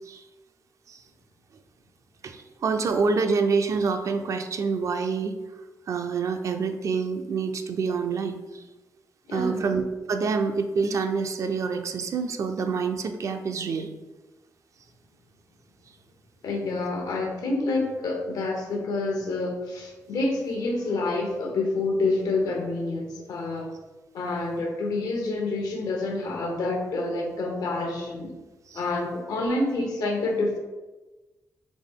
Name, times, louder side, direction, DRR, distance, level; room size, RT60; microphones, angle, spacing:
voice 1, 2.2-5.4 5.9-8.6 9.3-9.8 10.1-13.9 28.7-28.8, right 5 dB, 55° right, 7 dB, 0.4 m, -27 dB
voice 2, 9.3-9.6 16.4-23.7 24.1-28.3 28.7-30.6, left 2 dB, 80° left, 2 dB, 0.9 m, -28 dB
4.1 x 3.4 x 3.6 m, 1.2 s
wide cardioid pair, 140°, 6 cm